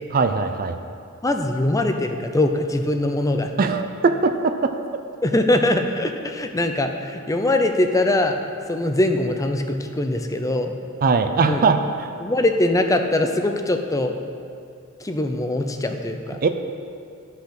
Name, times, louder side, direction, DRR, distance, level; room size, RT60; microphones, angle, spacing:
voice 1, 0.1-0.8 3.6-4.7 11.0-12.1 16.4-16.5, right 4 dB, 40° right, 8 dB, 0.5 m, -20 dB
voice 2, 1.2-3.8 5.2-8.4 8.7-10.7 11.4-11.6 12.2-14.1 15.0-16.4, left 1 dB, 15° left, 5 dB, 0.5 m, -22 dB
12.5 x 5.7 x 5.9 m, 2.4 s
head